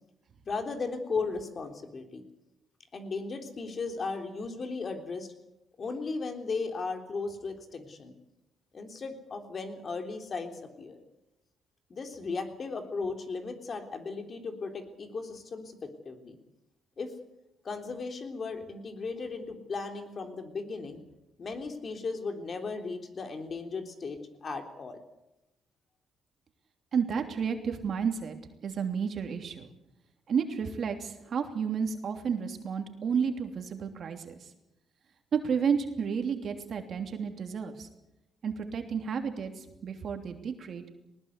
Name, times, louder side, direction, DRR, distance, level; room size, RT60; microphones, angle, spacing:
voice 1, 0.4-2.2 2.9-5.3 5.8-8.1 8.7-11.0 11.9-16.4 17.0-17.1 17.6-21.0 21.4-25.0, left 4 dB, 45° left, 5 dB, 3.5 m, -36 dB
voice 2, 26.9-28.4 28.6-29.7 30.3-34.5 35.3-37.9 38.4-40.8, right 6 dB, 55° right, 5 dB, 3.0 m, -31 dB
20.0 x 19.0 x 8.3 m, 0.91 s
cardioid pair, 90°, 0 cm